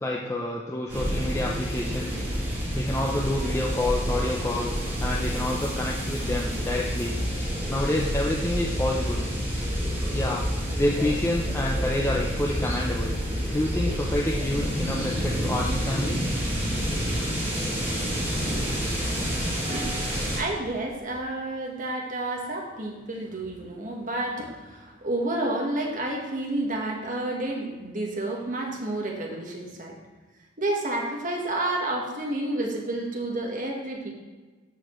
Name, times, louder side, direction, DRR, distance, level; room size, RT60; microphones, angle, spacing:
voice 1, 0.0-2.2 2.7-7.2 7.7-9.2 10.0-10.5 10.8-13.1 13.5-16.3, left 1 dB, 15° left, -2 dB, 0.5 m, -28 dB
sound 1, 0.9-20.4, equal, 10° right, 1.8 m, -28 dB
voice 2, 19.6-30.0 30.6-34.1, right 1 dB, 40° right, 0 dB, 1.3 m, -30 dB
13.0 x 4.3 x 3.1 m, 1.3 s
head